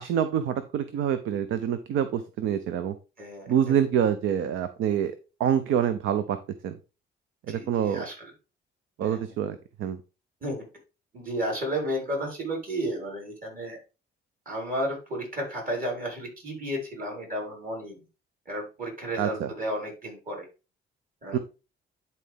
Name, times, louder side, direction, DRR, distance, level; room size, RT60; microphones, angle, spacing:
voice 1, 0.0-2.9 3.5-5.1 5.4-6.4 6.6-6.8 7.5-8.1 9.0-10.0 19.2-19.5 21.3-21.4, right 9 dB, 80° right, 11 dB, 0.7 m, -26 dB
voice 2, 3.2-3.8 7.5-8.3 9.0-9.2 10.4-10.6 11.1-13.8 14.5-18.0 18.5-20.4 21.2-21.4, equal, 45° right, 0 dB, 4.6 m, -33 dB
10.5 x 4.1 x 3.5 m, 0.30 s
cardioid pair, 90°, 20 cm